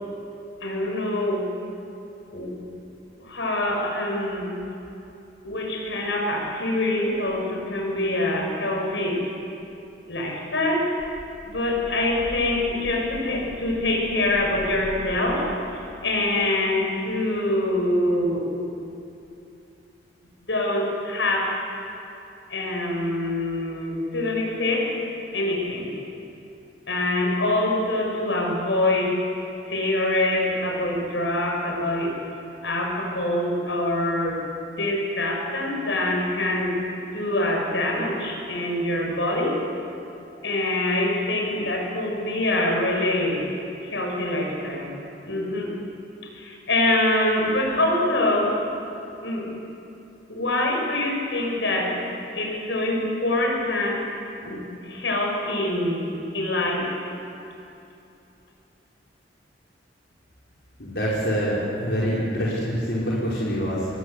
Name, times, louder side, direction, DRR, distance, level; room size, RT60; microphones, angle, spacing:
voice 1, 0.6-1.5 2.3-2.5 3.2-4.5 5.4-9.2 10.1-10.9 11.4-18.5 20.5-21.6 22.5-25.0 25.3-25.9 26.9-29.2 29.7-32.2 32.6-34.4 34.7-36.8 37.1-39.6 40.4-43.4 43.8-44.9 45.2-45.7 46.3-48.6 49.2-49.5 50.3-52.0 52.3-54.1 54.4-56.1 56.3-57.0, left 1 dB, 85° left, 0 dB, 6.5 m, -25 dB
voice 2, 60.8-63.9, equal, 70° left, -7 dB, 5.0 m, -25 dB
26.5 x 23.0 x 8.2 m, 2.8 s
head